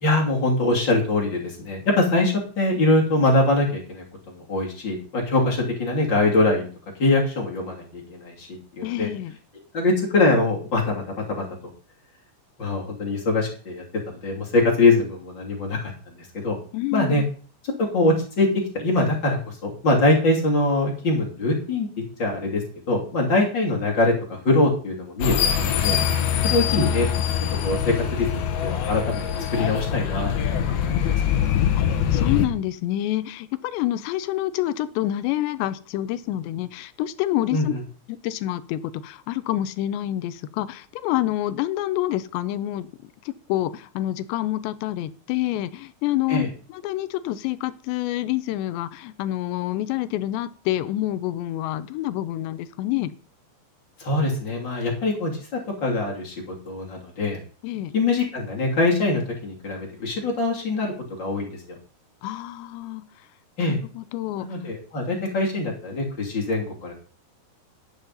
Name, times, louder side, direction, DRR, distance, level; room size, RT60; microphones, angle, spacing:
voice 1, 0.0-4.0 4.5-6.7 7.0-8.5 8.8-9.1 9.7-10.9 11.4-11.5 12.6-16.6 16.9-17.2 17.8-21.9 22.2-22.6 22.9-25.4 25.6-26.0 26.4-27.1 27.6-29.2 29.5-30.9 37.5-37.8 46.3-46.5 54.0-57.4 57.9-60.9 61.2-61.6 63.6-63.8 64.4-66.9, left 2 dB, 30° left, -1 dB, 2.7 m, -23 dB
voice 2, 8.8-9.4 16.7-17.3 31.8-31.9 32.1-37.7 38.1-42.9 43.3-53.1 57.6-57.9 62.2-63.1 63.6-64.5, left 14 dB, 85° left, 14 dB, 2.9 m, -27 dB
sound 1, 25.2-32.5, left 9 dB, 70° left, 2.7 m, -23 dB
12.0 x 9.2 x 4.0 m, 0.40 s
omnidirectional pair, 5.0 m